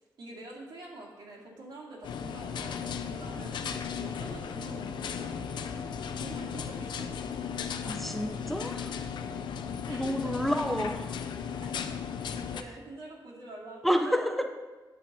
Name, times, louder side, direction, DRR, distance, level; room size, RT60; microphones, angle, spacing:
voice 1, 0.2-3.7 3.9-7.2 9.2-9.6 9.9-10.3 11.6-11.8 12.3-14.5, right 2 dB, 75° right, -3 dB, 2.3 m, -46 dB
sound 1, 2.0-12.6, left 7 dB, 80° left, 0.5 m, -36 dB
sound 2, 2.8-9.9, right 2 dB, 55° right, 1.2 m, -53 dB
voice 2, 7.9-8.9 9.9-11.1 13.8-14.4, equal, ahead, 5 dB, 0.5 m, -29 dB
9.2 x 4.0 x 7.2 m, 1.3 s
wide cardioid pair, 170°, 8 cm